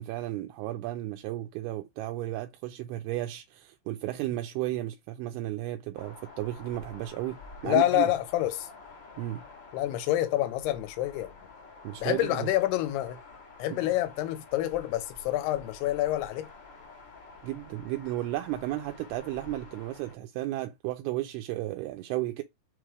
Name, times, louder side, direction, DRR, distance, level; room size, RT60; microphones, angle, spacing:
voice 1, 0.0-8.1 9.2-9.4 11.8-12.5 13.7-13.9 17.4-22.4, right 15 dB, 85° right, 2.3 m, -34 dB
sound 1, 5.9-20.1, left 3 dB, 40° left, 1.7 m, -49 dB
voice 2, 7.6-8.7 9.7-11.3 12.0-13.2 13.6-16.5, left 14 dB, 80° left, 2.7 m, -27 dB
6.0 x 3.3 x 4.7 m
omnidirectional pair, 4.9 m